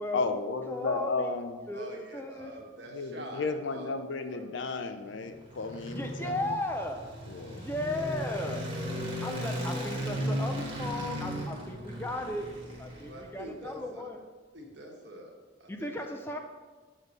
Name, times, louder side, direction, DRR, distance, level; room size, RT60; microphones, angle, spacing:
voice 1, 0.1-1.6 2.9-6.4 7.3-7.7, left 4 dB, 70° left, 8 dB, 0.5 m, -33 dB
voice 2, 0.7-1.4 1.7-2.5 5.9-7.1 7.6-8.7 9.2-12.5 12.8-14.2 15.7-16.4, left 1 dB, 10° left, 4 dB, 0.4 m, -36 dB
voice 3, 1.7-3.9 4.3-4.4 13.0-14.1 14.5-15.3 15.6-16.4, right 1 dB, 60° right, 0 dB, 1.2 m, -45 dB
sound 1, 5.1-13.5, equal, 25° right, 1.3 m, -36 dB
8.1 x 3.1 x 5.3 m, 1.3 s
head